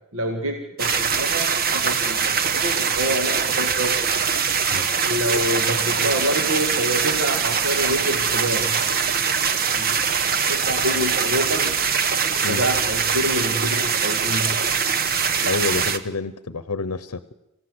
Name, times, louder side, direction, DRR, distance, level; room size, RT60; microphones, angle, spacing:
voice 1, 0.1-3.9 5.0-8.8 9.8-10.0 10.5-11.8 12.5-14.6, equal, 60° right, 4 dB, 2.1 m, -27 dB
Pond Fountain loud, 0.8-16.0, right 6 dB, 45° right, 1.1 m, -22 dB
voice 2, 15.4-17.3, left 4 dB, 85° left, 15 dB, 0.8 m, -28 dB
27.0 x 15.0 x 7.9 m, 0.92 s
head